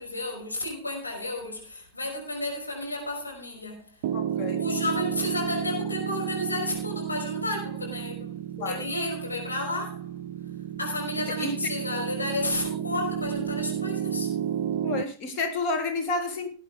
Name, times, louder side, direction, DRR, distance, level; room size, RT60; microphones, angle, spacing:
voice 1, 0.0-3.9 4.5-8.3 8.6-10.1 10.8-14.3, left 2 dB, 80° left, 5.2 m, -32 dB
Piano, 4.0-15.0, right 9 dB, 55° right, 0.6 m, -32 dB
voice 2, 4.1-4.6 8.6-8.8 11.3-11.5 14.8-16.5, left 3 dB, 35° left, 3.2 m, -30 dB
18.5 x 9.3 x 3.5 m
figure-of-eight pair, 90°, 0 cm